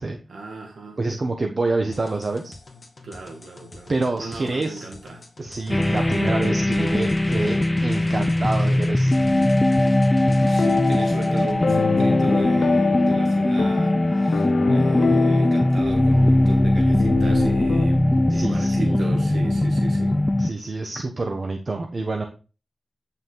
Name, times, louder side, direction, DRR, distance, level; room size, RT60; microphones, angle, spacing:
voice 1, 0.3-1.0 3.0-5.2 5.6-5.8 10.1-20.2, right 3 dB, 70° right, 1.9 m, -36 dB
voice 2, 1.0-2.5 3.9-4.8 5.4-7.5 7.8-9.2 18.3-19.0 20.4-22.2, right 3 dB, 35° right, 1.0 m, -27 dB
sound 1, 1.9-11.5, left 2 dB, 35° left, 1.7 m, -42 dB
sound 2, 5.7-20.5, left 1 dB, 15° left, 0.3 m, -20 dB
sound 3, 10.4-17.9, left 4 dB, 70° left, 0.7 m, -25 dB
9.2 x 5.6 x 3.8 m
wide cardioid pair, 165°, 0 cm